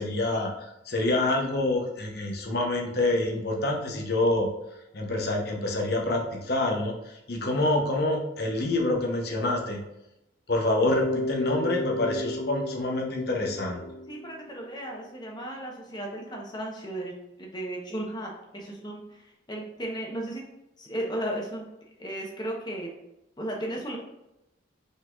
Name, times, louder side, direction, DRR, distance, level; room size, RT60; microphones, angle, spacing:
voice 1, 0.0-4.5 4.9-9.8 10.5-13.8, left 2 dB, 55° left, 1 dB, 0.9 m, -27 dB
Bass guitar, 10.9-14.8, left 1 dB, 75° left, 0.3 m, -32 dB
voice 2, 14.1-17.1 17.4-20.4 20.8-21.7 22.0-22.9 23.4-24.0, right 1 dB, 20° left, -1 dB, 0.9 m, -35 dB
5.2 x 4.0 x 2.4 m, 0.88 s
head